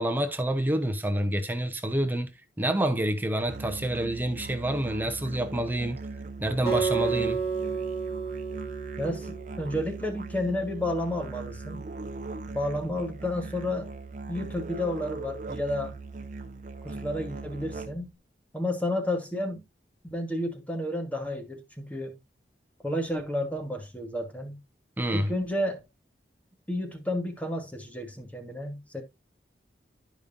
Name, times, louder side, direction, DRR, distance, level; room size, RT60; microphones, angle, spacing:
voice 1, 0.0-2.3 2.6-6.0 6.4-7.4 25.0-25.3, right 1 dB, 10° right, 0.7 m, -28 dB
Musical instrument, 3.4-18.2, right 3 dB, 45° right, 0.7 m, -40 dB
Acoustic guitar, 6.7-9.9, right 5 dB, 35° left, 2.0 m, -30 dB
voice 2, 9.0-11.9 12.5-13.9 14.3-16.0 16.8-18.1 18.5-19.6 20.1-22.2 22.8-24.6 25.1-25.8 26.7-29.0, left 1 dB, 10° left, 1.3 m, -31 dB
11.5 x 5.2 x 2.6 m
head